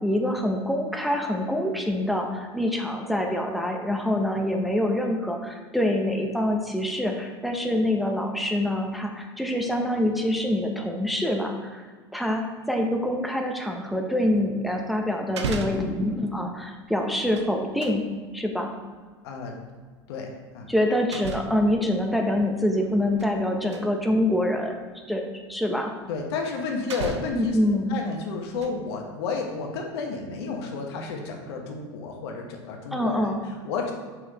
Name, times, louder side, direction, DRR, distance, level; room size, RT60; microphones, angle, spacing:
voice 1, 0.0-11.8 12.1-12.4 12.7-18.0 18.3-18.7 20.7-24.8 25.1-25.2 25.5-25.9 27.3-28.0 32.9-33.4, left 1 dB, ahead, 2 dB, 0.8 m, -25 dB
sound 1, 14.7-14.8 15.2-16.0 17.1-18.0 19.6-19.8 21.1-21.7 22.8-23.4 23.7-23.9 24.8-24.9 26.3-26.4 26.9-27.5 28.3-28.9 29.3-29.4, right 4 dB, 80° right, 0.6 m, -35 dB
voice 2, 19.2-19.6 20.1-20.7 26.1-33.9, left 4 dB, 65° left, 2 dB, 1.1 m, -32 dB
6.2 x 5.6 x 3.0 m, 1.5 s
hypercardioid pair, 85°, 14 cm